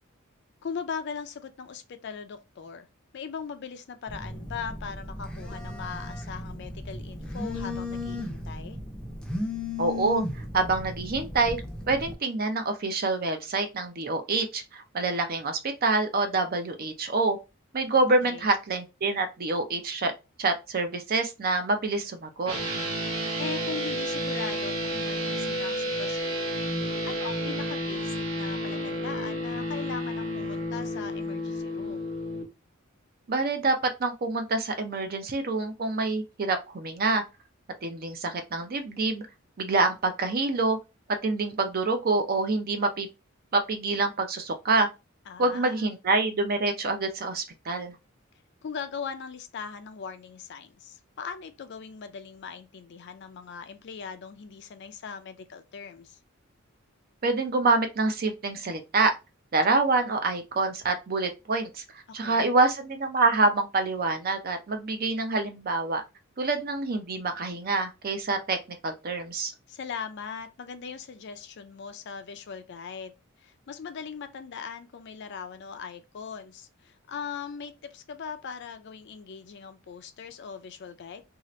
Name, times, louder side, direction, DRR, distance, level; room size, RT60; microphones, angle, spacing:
voice 1, 0.6-2.9 3.1-8.8 18.2-18.5 23.4-26.4 27.0-32.1 45.3-45.9 48.6-56.2 62.1-62.6 69.7-73.1 73.4-81.2, left 6 dB, 55° left, 0.4 m, -39 dB
Telephone, 4.1-12.1, left 2 dB, 5° left, 0.5 m, -36 dB
voice 2, 9.8-10.2 10.5-11.6 11.9-17.4 17.7-20.1 20.4-22.5 33.3-37.2 37.8-39.2 39.6-40.8 41.2-43.1 43.5-44.9 45.4-48.0 57.2-59.1 59.5-66.0 66.4-68.6 68.8-69.5, right 3 dB, 45° right, 0.5 m, -26 dB
sound 1, 22.5-32.4, equal, 85° right, 1.0 m, -31 dB
2.8 x 2.4 x 3.0 m
head